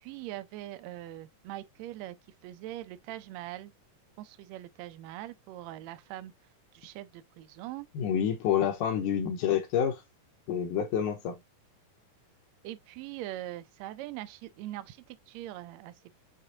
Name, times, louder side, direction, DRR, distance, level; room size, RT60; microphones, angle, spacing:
voice 1, 0.0-2.2 2.4-3.7 4.2-6.3 6.7-7.9 12.6-16.1, right 14 dB, 90° right, 1.5 m, -42 dB
voice 2, 7.9-10.0 10.5-11.4, left 9 dB, 75° left, 2.3 m, -28 dB
6.3 x 2.5 x 2.7 m
omnidirectional pair, 3.7 m